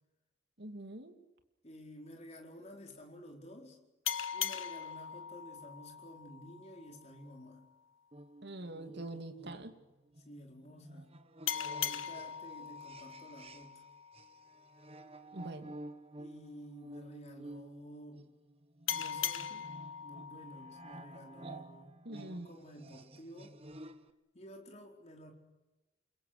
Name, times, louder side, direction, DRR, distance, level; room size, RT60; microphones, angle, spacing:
voice 1, 0.6-1.2 8.4-9.7 15.3-15.7 21.4-21.6 22.0-22.5, right 1 dB, 55° right, 7 dB, 2.6 m, -44 dB
voice 2, 1.6-3.8 4.3-7.7 10.2-11.1 11.8-13.9 16.2-18.3 18.9-23.6 24.3-25.3, equal, 35° left, 2 dB, 4.5 m, -52 dB
sound 1, 4.1-7.3 11.5-14.7 18.9-21.8, left 9 dB, 75° left, 1.0 m, -40 dB
sound 2, 8.1-13.9 14.1-24.1, right 1 dB, 30° right, 1.3 m, -52 dB
29.0 x 22.5 x 6.7 m, 1.0 s
head